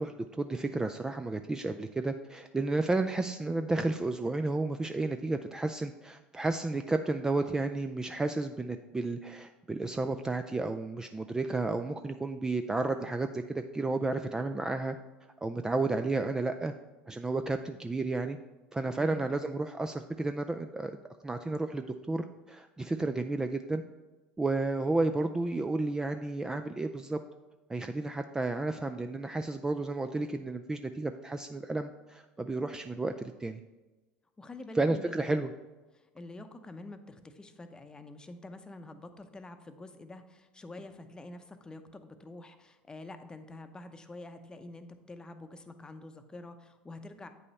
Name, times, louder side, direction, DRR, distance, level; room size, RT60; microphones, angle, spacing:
voice 1, 0.0-15.0 15.4-16.7 17.1-18.4 18.7-20.9 21.2-23.8 24.4-27.2 27.7-33.6 34.7-35.5, right 2 dB, 15° right, 7 dB, 0.4 m, -32 dB
voice 2, 18.9-19.3 34.4-35.4 35.9-47.3, left 2 dB, 15° left, 8 dB, 0.7 m, -47 dB
8.4 x 5.4 x 4.1 m, 1.2 s
hypercardioid pair, 85°, 5 cm